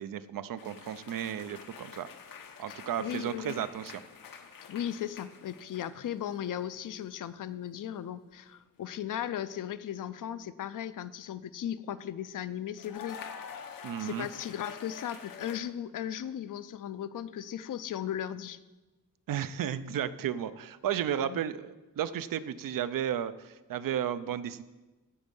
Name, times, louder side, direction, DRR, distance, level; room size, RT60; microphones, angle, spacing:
voice 1, 0.0-2.1 2.6-4.0 13.8-14.3 19.3-24.6, right 9 dB, 80° right, 14 dB, 0.6 m, -33 dB
sound 1, 0.6-6.1 6.3-6.8 8.7-8.9 12.8-15.6, left 7 dB, 90° left, 1.0 m, -47 dB
voice 2, 2.7-3.6 4.7-13.2 14.0-18.6 21.2-21.5, left 10 dB, 70° left, 14 dB, 0.5 m, -37 dB
15.5 x 5.2 x 5.4 m, 1.2 s
wide cardioid pair, 160°, 33 cm